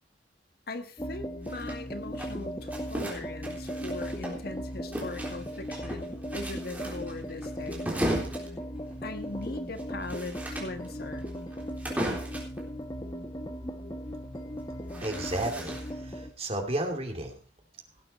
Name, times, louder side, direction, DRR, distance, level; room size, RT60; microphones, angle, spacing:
voice 1, 0.7-7.9 9.0-11.3, left 2 dB, 55° left, 8 dB, 1.4 m, -40 dB
sound 1, 1.0-16.3, equal, 20° left, 1.2 m, -37 dB
sound 2, 1.4-4.6 4.9-12.6 14.5-16.1, right 1 dB, 10° right, 3.7 m, -36 dB
voice 2, 15.0-17.4, right 1 dB, 35° right, 4 dB, 2.7 m, -33 dB
17.5 x 8.8 x 4.2 m, 0.37 s
head